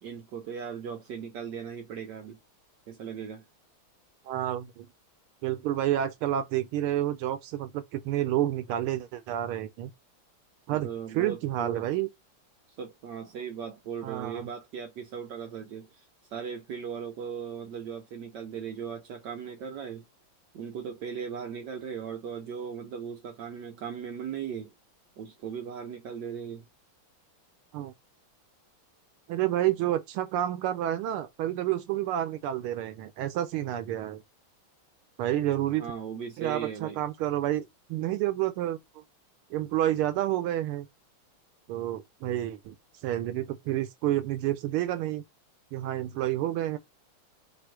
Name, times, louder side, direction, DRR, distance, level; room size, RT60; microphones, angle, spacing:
voice 1, 0.0-2.4 2.9-3.4 10.7-11.9 12.8-16.0 16.3-20.0 20.5-24.7 25.2-26.7 35.8-37.0, right 7 dB, 65° right, 1.2 m, -38 dB
voice 2, 4.3-4.9 5.4-9.9 10.7-10.9 11.1-12.1 14.0-14.5 27.7-27.9 29.3-34.2 35.2-35.9 36.4-39.0 39.5-40.9 41.7-42.8 43.0-45.2 45.7-46.8, right 13 dB, 85° right, 1.5 m, -29 dB
4.7 x 2.5 x 4.5 m
omnidirectional pair, 2.4 m